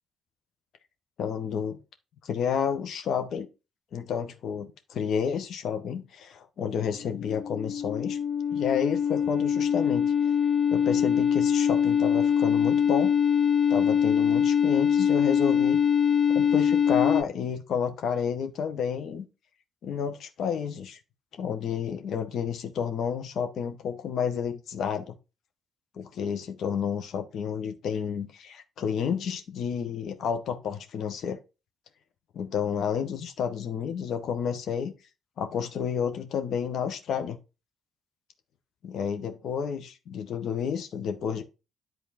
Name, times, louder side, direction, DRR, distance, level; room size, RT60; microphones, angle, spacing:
voice 1, 1.2-1.8 2.2-3.5 3.9-8.2 8.5-10.1 10.7-13.1 13.7-15.8 16.3-19.2 19.8-21.0 21.4-25.2 25.9-31.4 32.3-34.9 35.4-37.4 38.8-41.4, left 7 dB, 65° left, 1.6 m, -30 dB
sound 1, 7.0-17.2, left 8 dB, 50° left, 0.7 m, -23 dB
10.5 x 4.4 x 4.4 m
hypercardioid pair, 45°, 0 cm